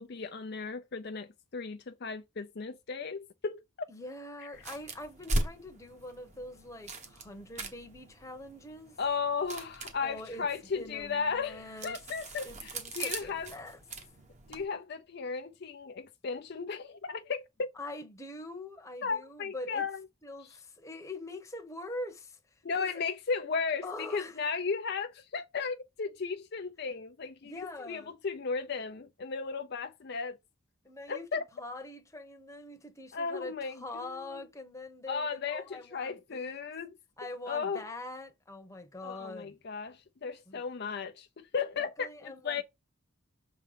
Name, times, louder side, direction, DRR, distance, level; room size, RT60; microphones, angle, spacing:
voice 1, 0.0-3.6 9.0-13.5 14.5-17.7 19.0-20.0 22.6-30.4 31.1-31.4 33.1-34.5 35.1-37.0 37.5-37.8 39.0-42.6, left 5 dB, 50° left, 0.5 m, -35 dB
voice 2, 3.9-9.0 10.0-10.5 10.7-12.0 12.4-13.8 17.8-19.9 20.2-22.9 23.8-24.4 27.4-28.1 30.8-36.7 37.2-39.6 40.5-40.6 41.8-42.6, left 2 dB, 15° left, 1.0 m, -44 dB
sound 1, 4.5-14.6, right 1 dB, 35° right, 1.1 m, -40 dB
6.3 x 3.9 x 5.0 m
head